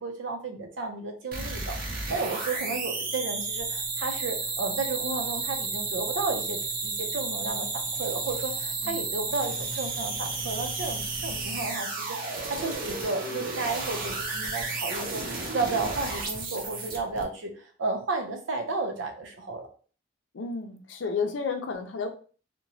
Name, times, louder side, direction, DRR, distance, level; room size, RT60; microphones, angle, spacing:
voice 1, 0.0-7.7 8.0-19.7, right 3 dB, 90° right, 4 dB, 0.6 m, -33 dB
sound 1, 1.3-17.2, right 3 dB, 50° right, 0.6 m, -32 dB
voice 2, 20.3-22.1, left 5 dB, 80° left, 6 dB, 0.5 m, -31 dB
2.9 x 2.1 x 2.7 m, 0.40 s
head